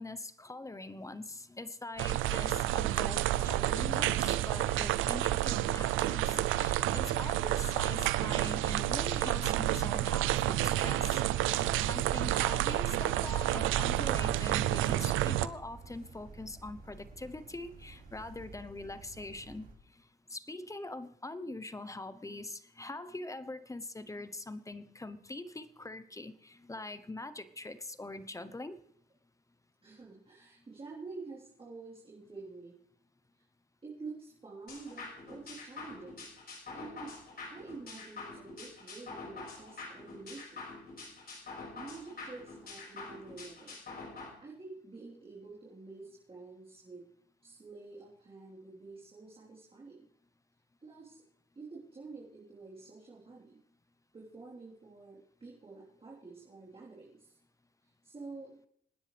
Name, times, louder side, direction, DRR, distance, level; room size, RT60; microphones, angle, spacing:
voice 1, 0.0-19.7 20.3-28.8, left 2 dB, 15° left, 13 dB, 0.9 m, -43 dB
sound 1, 1.9-19.7, right 3 dB, 50° right, 4.9 m, -50 dB
sound 2, 2.0-15.5, right 14 dB, 90° right, 0.6 m, -30 dB
voice 2, 29.8-32.7 33.3-33.4 33.8-36.2 36.7-37.2 37.5-40.6 41.8-43.8 44.1-47.0 47.4-50.1 50.8-51.2 51.6-53.6 54.1-57.4 57.8-58.6, right 3 dB, 30° right, -6 dB, 4.0 m, -48 dB
sound 3, 34.7-44.3, left 3 dB, 50° left, 5.6 m, -46 dB
27.0 x 9.8 x 3.4 m, 0.67 s
cardioid pair, 90°, 20 cm